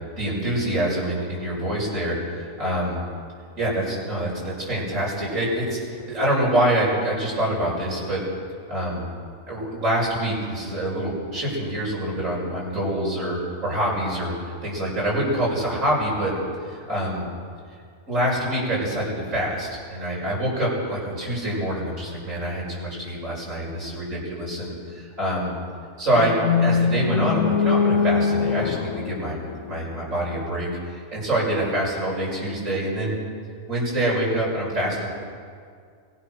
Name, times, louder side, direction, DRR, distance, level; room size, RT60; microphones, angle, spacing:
voice 1, 0.2-3.0 3.6-8.2 8.7-9.1 9.5-16.3 16.6-17.2 18.1-25.5 26.0-29.4 29.7-33.1 33.7-35.1, right 1 dB, 65° right, -5 dB, 6.6 m, -25 dB
sound 1, 26.1-30.3, left 5 dB, 70° left, 1.2 m, -23 dB
26.0 x 16.5 x 6.5 m, 2.2 s
omnidirectional pair, 1.4 m